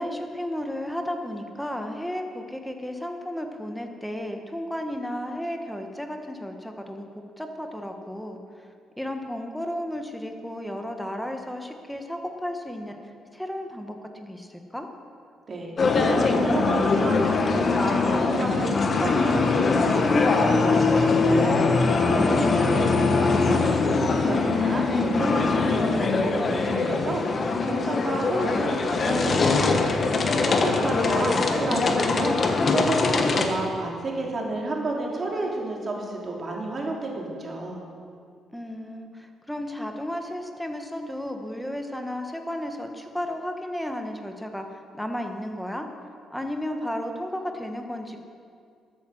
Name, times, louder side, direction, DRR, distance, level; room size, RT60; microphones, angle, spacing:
voice 1, 0.0-8.7 9.0-13.0 13.3-14.9 22.3-22.8 38.5-45.9 46.3-48.2, left 1 dB, 5° left, 5 dB, 1.3 m, -33 dB
voice 2, 15.5-22.8 23.1-37.8, right 2 dB, 40° right, -1 dB, 2.8 m, -31 dB
sound 1, 15.8-33.5, left 3 dB, 40° left, 1.3 m, -22 dB
13.0 x 9.0 x 6.4 m, 2.3 s
cardioid pair, 90°, 0 cm